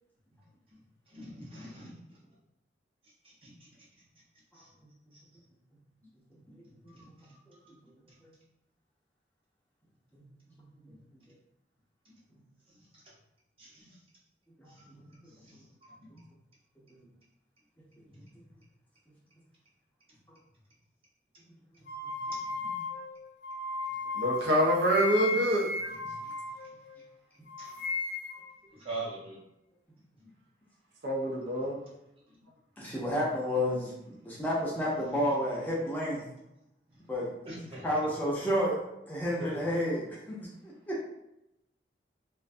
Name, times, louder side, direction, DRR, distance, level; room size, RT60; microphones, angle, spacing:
voice 1, 1.1-2.0 3.2-3.7 4.5-4.7 5.1-5.2 6.9-7.7 8.1-8.2 10.9-11.0 12.1-12.2 13.6-14.0 14.6-16.3 18.1-18.4 22.3-22.7 25.9-26.3 27.6-27.7 28.7-29.4 30.2-30.3 36.9-37.0 37.5-37.9 39.4-39.6, right 2 dB, 30° right, -5 dB, 0.7 m, -45 dB
voice 2, 4.5-4.9 6.5-6.6 8.2-8.3 10.1-10.2 10.8-10.9 14.6-15.1 32.8-36.2 37.1-37.3 37.8-38.8 39.1-41.0, equal, 10° left, -6 dB, 0.5 m, -31 dB
sound 1, 21.9-27.1 27.5-28.5, left 3 dB, 80° left, 0.4 m, -36 dB
voice 3, 24.1-25.7 31.0-31.8, equal, 75° right, -1 dB, 0.6 m, -26 dB
2.4 x 2.2 x 2.5 m, 0.86 s
head